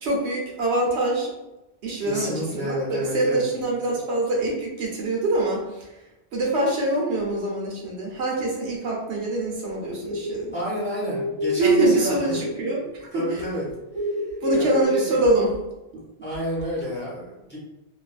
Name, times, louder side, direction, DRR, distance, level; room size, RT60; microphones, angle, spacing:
voice 1, 0.0-1.3 1.8-5.9 6.3-10.5 11.6-13.4 14.4-15.5, right 2 dB, 90° right, -2 dB, 1.0 m, -24 dB
voice 2, 2.0-3.4 10.5-12.4 13.1-13.6 14.0-14.1 14.5-15.2 16.2-17.6, equal, 10° left, -8 dB, 0.9 m, -30 dB
sound 1, 9.6-12.7 13.0-14.8, left 2 dB, 40° right, 0.6 m, -29 dB
2.5 x 2.4 x 2.4 m, 0.98 s
omnidirectional pair, 1.1 m